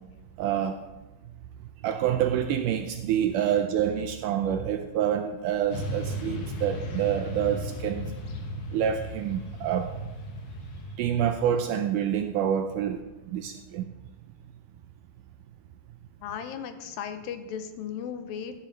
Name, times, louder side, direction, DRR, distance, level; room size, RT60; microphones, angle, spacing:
voice 1, 0.4-0.8 1.8-8.1 8.7-10.1 11.0-13.9, right 9 dB, 80° right, 7 dB, 1.8 m, -27 dB
Motorcycle / Traffic noise roadway noise, 5.7-11.0, equal, 65° left, 2.8 m, -35 dB
voice 2, 16.2-18.5, left 8 dB, 90° left, 8 dB, 2.5 m, -36 dB
14.5 x 9.8 x 3.3 m, 1.1 s
omnidirectional pair, 4.1 m